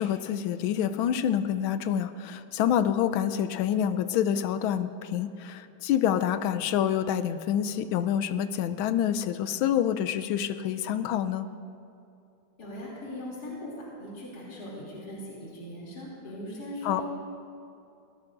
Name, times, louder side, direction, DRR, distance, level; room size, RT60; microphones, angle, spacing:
voice 1, 0.0-11.5 16.8-17.0, left 9 dB, 75° left, 11 dB, 1.3 m, -27 dB
voice 2, 12.6-17.2, left 1 dB, 45° left, -6 dB, 3.4 m, -39 dB
22.5 x 17.5 x 2.6 m, 2.7 s
omnidirectional pair, 2.4 m